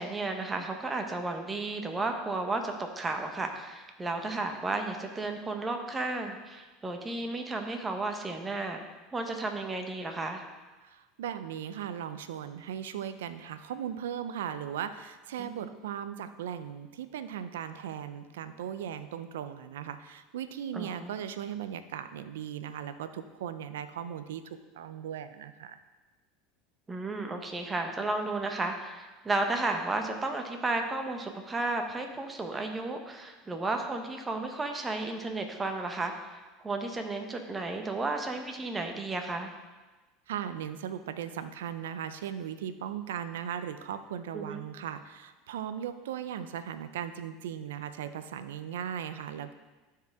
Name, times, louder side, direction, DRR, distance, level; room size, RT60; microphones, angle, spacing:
voice 1, 0.0-8.8 9.1-10.4 15.4-15.7 20.7-21.1 26.9-39.5 44.3-44.6, right 2 dB, 20° right, 4 dB, 1.1 m, -33 dB
voice 2, 10.8-24.4 24.7-25.8 40.3-49.5, right 9 dB, 85° right, 11 dB, 0.5 m, -38 dB
12.5 x 4.6 x 3.6 m, 1.2 s
supercardioid pair, 100°, 0 cm